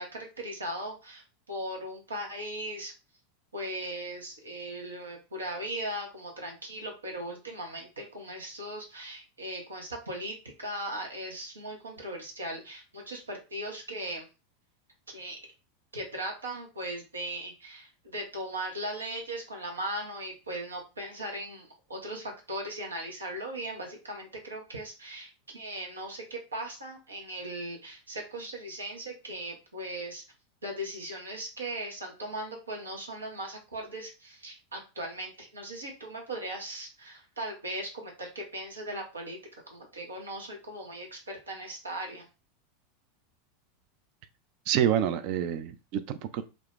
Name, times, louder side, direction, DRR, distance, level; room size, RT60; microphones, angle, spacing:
voice 1, 0.0-2.9 3.5-14.3 15.1-15.4 15.9-30.2 30.6-39.4 39.7-42.3, right 1 dB, 80° right, 0 dB, 0.8 m, -38 dB
voice 2, 44.7-46.4, right 10 dB, 50° right, 12 dB, 0.3 m, -27 dB
2.5 x 2.3 x 3.5 m, 0.30 s
figure-of-eight pair, 85°, 0 cm